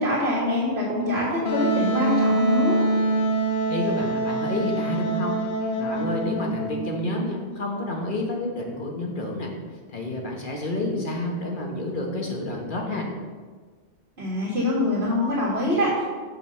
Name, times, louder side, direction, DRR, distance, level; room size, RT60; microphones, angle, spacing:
voice 1, 0.0-2.8 14.2-16.0, left 1 dB, 70° right, -8 dB, 2.0 m, -24 dB
Wind instrument woodwind instrument, 1.5-7.0, right 2 dB, 85° left, 1.1 m, -24 dB
voice 2, 3.7-5.4 5.8-9.5 9.9-13.1, left 2 dB, 50° left, 0 dB, 1.4 m, -29 dB
7.0 x 5.5 x 5.5 m, 1.5 s
omnidirectional pair, 1.1 m